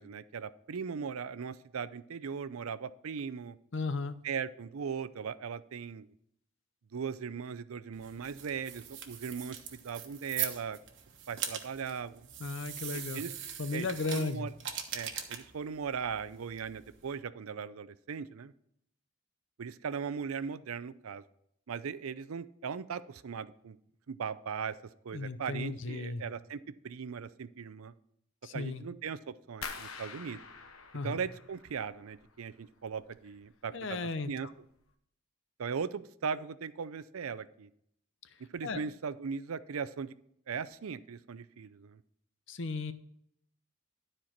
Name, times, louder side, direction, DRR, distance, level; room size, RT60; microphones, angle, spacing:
voice 1, 0.0-3.6 4.2-6.1 6.9-10.8 11.3-12.2 12.9-13.3 13.7-14.5 14.9-18.5 19.6-21.2 21.7-23.8 24.1-24.7 25.0-27.9 28.5-30.4 31.0-34.0 34.3-34.5 35.6-37.7 38.5-40.1 40.5-42.0, right 6 dB, 85° right, 15 dB, 0.5 m, -38 dB
voice 2, 3.7-4.2 12.4-13.2 13.6-14.5 25.1-26.2 28.4-28.8 30.9-31.2 33.7-34.5 38.6-38.8 42.5-42.9, left 3 dB, 60° left, 12 dB, 0.7 m, -35 dB
sound 1, 7.9-17.1, right 8 dB, 55° right, 1.2 m, -42 dB
sound 2, 29.6-32.5 32.8-33.5 33.8-34.2 34.7-34.8, left 5 dB, 90° left, 1.0 m, -46 dB
12.5 x 4.4 x 5.8 m, 0.72 s
head